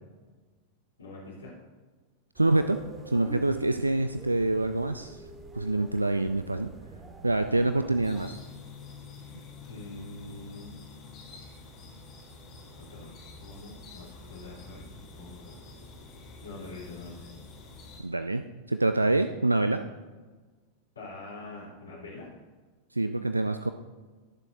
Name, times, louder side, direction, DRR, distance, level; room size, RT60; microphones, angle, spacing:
voice 1, 1.0-1.5 9.7-10.7 12.7-15.5 16.4-17.3 21.0-22.3, left 2 dB, 75° left, -6 dB, 3.6 m, -44 dB
sound 1, 2.4-8.3, right 2 dB, 15° right, 1.5 m, -46 dB
voice 2, 2.4-5.2 5.5-6.7 7.2-8.4 18.0-18.4 18.7-19.8 22.9-23.7, right 2 dB, 85° right, 9 dB, 0.4 m, -26 dB
sound 2, 8.0-18.0, left 3 dB, 35° left, 3.5 m, -48 dB
19.5 x 7.3 x 2.7 m, 1.3 s
figure-of-eight pair, 90°, 0 cm